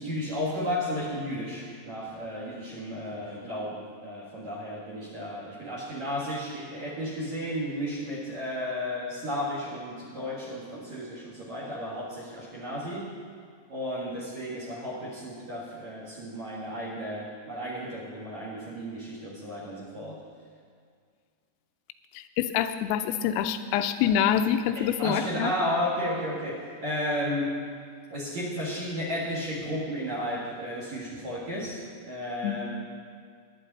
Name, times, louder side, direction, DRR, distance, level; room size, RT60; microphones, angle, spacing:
voice 1, 0.0-13.1 13.7-20.2 24.7-27.6 28.1-32.7, equal, 55° right, -3 dB, 2.1 m, -33 dB
voice 2, 22.2-25.5 32.4-32.6, left 9 dB, 90° left, 9 dB, 3.3 m, -26 dB
21.0 x 10.0 x 4.1 m, 2.1 s
omnidirectional pair, 5.8 m